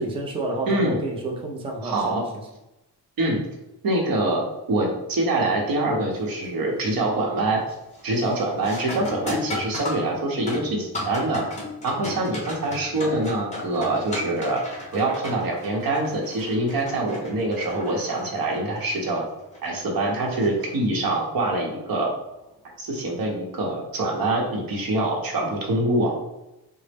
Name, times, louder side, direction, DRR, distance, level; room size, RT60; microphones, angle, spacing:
voice 1, 0.0-2.2, right 2 dB, 15° right, 0 dB, 0.4 m, -29 dB
voice 2, 0.7-1.0 1.8-2.2 3.2-3.4 3.8-7.6 8.0-11.4 11.8-14.6 14.9-19.3 19.6-22.1 22.8-26.1, right 2 dB, 60° right, 0 dB, 0.8 m, -25 dB
sound 1, 6.1-6.5 6.9-7.3 7.7-21.2 23.7-23.8 24.6-24.9, left 2 dB, 20° left, 0.7 m, -36 dB
3.8 x 2.0 x 3.4 m, 0.94 s
wide cardioid pair, 175°, 39 cm